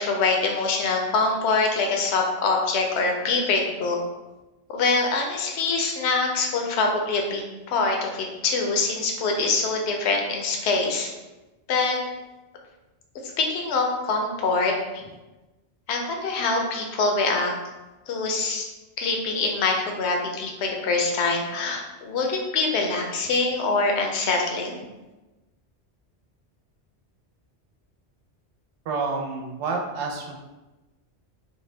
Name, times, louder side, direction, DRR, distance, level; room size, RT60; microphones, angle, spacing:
voice 1, 0.0-4.0 4.7-11.1 11.7-12.0 13.4-14.8 15.9-17.5 18.1-18.7 19.0-24.8, left 3 dB, 75° left, 1 dB, 0.8 m, -24 dB
voice 2, 28.9-30.3, right 4 dB, 85° right, 1 dB, 0.9 m, -29 dB
2.7 x 2.1 x 3.1 m, 1.1 s
omnidirectional pair, 1.2 m